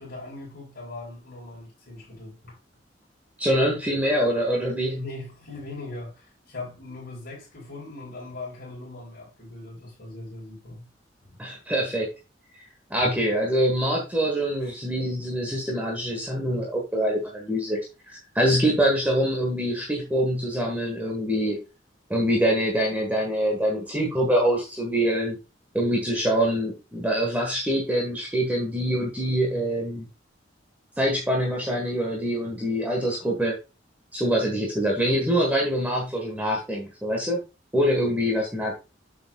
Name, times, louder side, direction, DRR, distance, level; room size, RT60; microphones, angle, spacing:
voice 1, 0.0-2.6 4.9-10.9 11.2-11.4 12.9-13.2 14.6-14.8, left 2 dB, 55° left, 3.5 m, -40 dB
voice 2, 3.4-5.0 11.4-12.1 12.9-17.8 18.1-21.6 22.1-25.4 25.7-30.1 31.0-33.5 34.1-37.4 37.7-38.8, equal, 10° right, 1.4 m, -24 dB
7.4 x 7.0 x 2.3 m
head